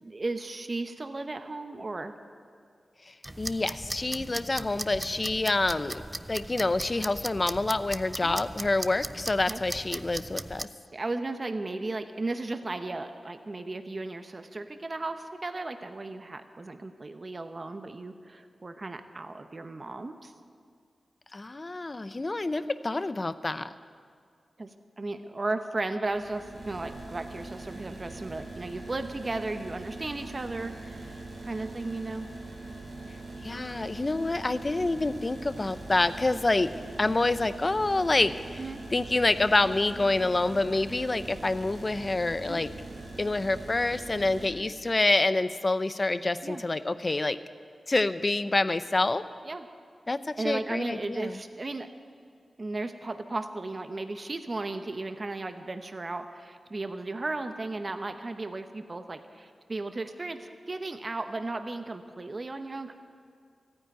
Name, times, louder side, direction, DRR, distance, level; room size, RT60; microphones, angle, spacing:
voice 1, 0.0-2.2 8.2-8.4 9.5-9.6 10.9-20.3 24.6-32.3 38.6-38.8 42.5-42.6 46.4-46.6 49.5-49.7 50.4-51.9 52.6-62.9, right 2 dB, 45° right, 7 dB, 0.9 m, -35 dB
sound 1, 3.2-10.6, right 1 dB, 20° right, 0.5 m, -38 dB
voice 2, 3.4-6.0 6.3-10.7 21.3-23.7 33.4-36.7 37.0-38.6 38.9-42.7 43.2-47.4 47.9-49.2 50.1-51.4, left 2 dB, 40° left, 13 dB, 0.6 m, -27 dB
sound 2, 26.0-44.5, right 2 dB, 70° right, 2.8 m, -42 dB
14.5 x 9.6 x 9.1 m, 2.2 s
cardioid pair, 50°, 0 cm